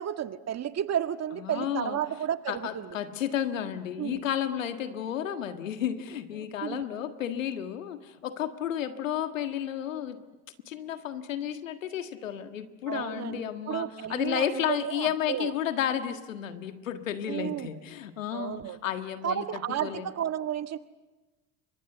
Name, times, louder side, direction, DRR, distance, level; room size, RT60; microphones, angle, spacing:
voice 1, 0.0-3.0 4.0-4.2 6.4-6.8 12.9-15.5 17.3-17.7 18.3-18.8 19.2-20.8, right 10 dB, 40° right, 9 dB, 1.7 m, -32 dB
voice 2, 1.4-2.0 2.5-10.2 10.7-19.5 19.8-20.1, left 10 dB, 85° left, 9 dB, 1.7 m, -32 dB
29.5 x 25.0 x 8.0 m, 1.2 s
hypercardioid pair, 65°, 38 cm